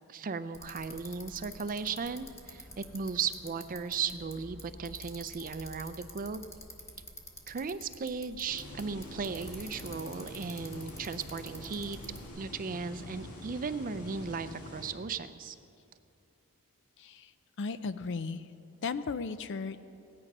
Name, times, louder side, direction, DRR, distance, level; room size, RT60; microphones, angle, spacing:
voice 1, 0.1-6.4 7.5-12.0 12.4-15.6, right 5 dB, 40° right, 12 dB, 0.5 m, -36 dB
Bicycle, 0.5-12.3, left 1 dB, 15° left, 1.3 m, -49 dB
sound 1, 8.5-14.9, left 1 dB, 80° left, 2.0 m, -46 dB
voice 2, 17.0-17.3 17.6-18.4 18.8-19.8, left 4 dB, 55° left, 13 dB, 0.5 m, -35 dB
17.0 x 9.9 x 5.4 m, 2.6 s
head